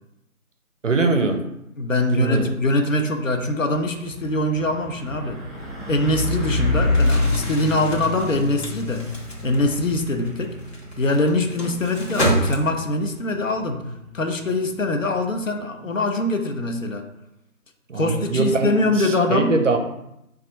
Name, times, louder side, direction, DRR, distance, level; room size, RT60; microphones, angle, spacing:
voice 1, 0.8-1.4 2.1-2.5 17.9-19.8, right 3 dB, 60° right, 5 dB, 0.5 m, -22 dB
voice 2, 1.8-5.4 5.9-9.1 9.4-10.6 11.0-13.8 14.1-17.0 17.9-19.6, left 2 dB, 60° left, 5 dB, 0.6 m, -23 dB
Truck, 2.6-2.8 3.2-15.7, left 2 dB, ahead, 0.4 m, -29 dB
Crumpling crinkling, 6.9-13.0, equal, 45° left, 1.0 m, -29 dB
3.2 x 2.3 x 4.0 m, 0.84 s
figure-of-eight pair, 165°, 44 cm